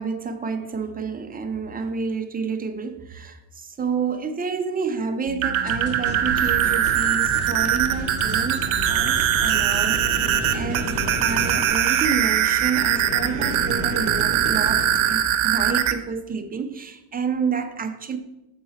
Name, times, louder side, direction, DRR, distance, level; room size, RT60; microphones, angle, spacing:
voice 1, 0.0-18.2, right 5 dB, 20° right, 0.5 m, -29 dB
sound 1, 5.3-15.9, right 10 dB, 70° right, 0.8 m, -22 dB
sound 2, 5.7-11.7, equal, 70° left, 2.4 m, -34 dB
sound 3, 8.9-15.7, equal, 20° left, 0.8 m, -34 dB
6.7 x 4.7 x 5.6 m
cardioid pair, 135°, 50 cm